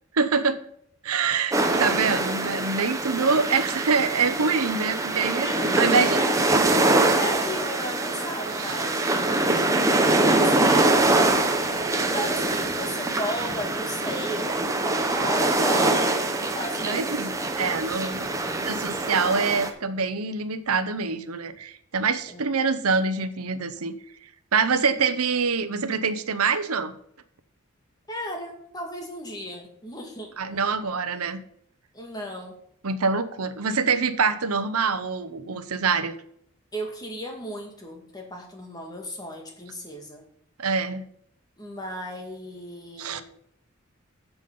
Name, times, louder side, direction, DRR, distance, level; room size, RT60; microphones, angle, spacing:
voice 1, 0.1-0.6 1.0-6.2 8.5-8.8 16.8-23.9 24.5-26.9 30.4-31.4 32.8-36.1 40.6-41.0 43.0-43.2, right 5 dB, 85° right, 11 dB, 0.8 m, -25 dB
sound 1, 1.5-19.7, right 2 dB, 15° right, 0.9 m, -24 dB
voice 2, 5.4-6.4 7.1-11.3 12.1-17.3 22.3-22.4 28.1-30.3 31.9-32.6 36.7-40.2 41.6-43.2, equal, 20° left, 1 dB, 2.0 m, -35 dB
9.1 x 7.2 x 5.4 m, 0.69 s
head